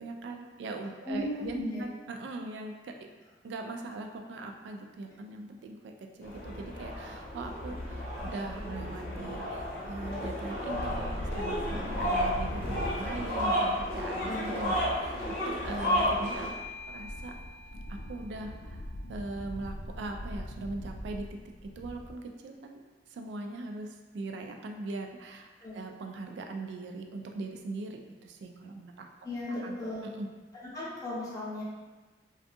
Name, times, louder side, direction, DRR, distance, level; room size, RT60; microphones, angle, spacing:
voice 1, 0.0-1.5 1.8-3.0 3.4-15.2 15.5-16.5 16.9-17.3 17.9-22.8 23.1-29.1 29.5-29.8 30.0-30.3, right 2 dB, 70° right, 3 dB, 0.3 m, -40 dB
voice 2, 1.1-1.8 14.2-14.5 25.6-25.8 29.2-30.0 30.7-31.6, left 1 dB, 20° left, -8 dB, 0.7 m, -35 dB
sound 1, 6.2-16.5, equal, 55° left, 0.7 m, -32 dB
sound 2, 7.6-22.1, equal, 70° left, 0.3 m, -42 dB
Bell / Doorbell, 15.8-21.0, left 2 dB, 45° right, 0.7 m, -49 dB
2.5 x 2.3 x 2.6 m, 1.3 s
head